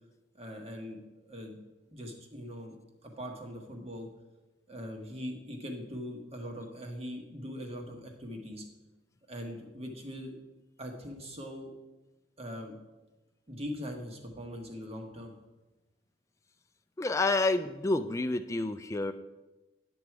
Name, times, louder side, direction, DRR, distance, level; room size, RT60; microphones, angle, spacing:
voice 1, 0.3-1.0 1.3-1.6 1.9-2.8 3.0-4.1 4.7-8.6 9.3-10.3 10.8-11.7 12.4-12.7 13.5-15.3, equal, 35° right, 3 dB, 1.3 m, -41 dB
voice 2, 17.0-19.1, left 2 dB, 15° left, 9 dB, 0.3 m, -29 dB
9.9 x 6.2 x 4.7 m, 1.1 s
head